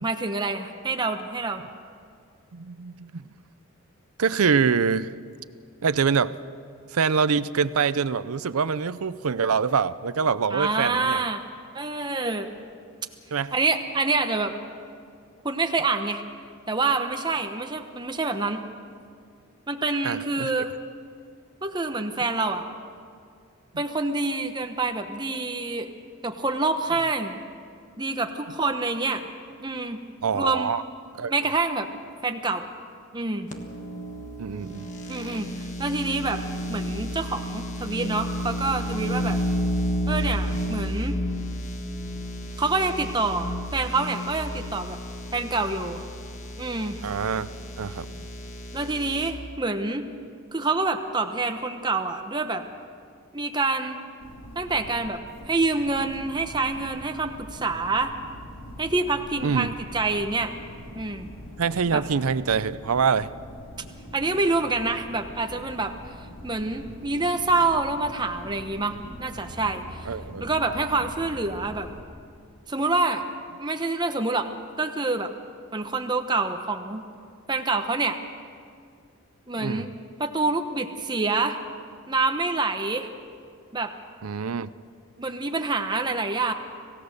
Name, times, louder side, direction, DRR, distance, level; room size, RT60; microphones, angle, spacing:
voice 1, 0.0-1.6 10.5-11.4 11.7-12.5 13.5-14.5 15.4-16.2 16.7-18.6 19.7-20.7 21.6-22.6 23.8-25.9 26.2-27.3 28.0-29.3 29.6-30.0 30.3-30.7 31.3-31.9 32.2-32.7 33.1-33.5 35.1-36.4 36.7-39.4 40.1-41.2 42.6-45.0 45.3-46.0 46.6-47.0 48.7-50.0 50.5-52.6 53.3-54.0 54.5-58.1 58.8-60.5 60.9-61.3 61.9-62.0 64.1-66.1 66.4-70.1 70.4-71.9 72.7-73.2 73.6-74.5 74.8-75.3 75.7-77.0 77.5-78.2 79.5-79.9 80.2-81.6 82.1-83.1 83.7-83.9 85.2-86.5, right 3 dB, 20° right, 6 dB, 1.0 m, -26 dB
voice 2, 2.5-3.3 4.2-5.1 5.8-6.3 6.9-11.2 13.3-13.5 20.0-20.5 30.2-30.8 31.1-31.3 34.4-34.9 47.0-47.5 47.8-48.3 59.4-59.7 61.6-63.3 69.6-69.8 70.1-70.5 79.6-79.9 84.2-84.7, right 6 dB, 90° right, 16 dB, 0.6 m, -25 dB
sound 1, 33.5-49.3, equal, 35° left, 1.5 m, -32 dB
sound 2, 54.2-72.0, equal, 65° left, 3.8 m, -43 dB
27.0 x 16.5 x 6.6 m, 2.3 s
head